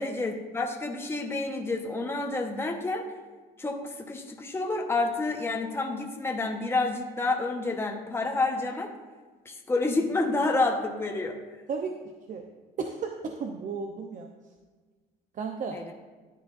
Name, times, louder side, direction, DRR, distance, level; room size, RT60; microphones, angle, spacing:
voice 1, 0.0-3.1 3.6-8.9 9.4-11.4 15.7-15.9, left 3 dB, 15° left, 1 dB, 1.2 m, -29 dB
voice 2, 12.8-14.3 15.4-15.8, right 5 dB, 50° right, 4 dB, 0.9 m, -34 dB
14.5 x 9.8 x 2.6 m, 1.4 s
cardioid pair, 110°, 17 cm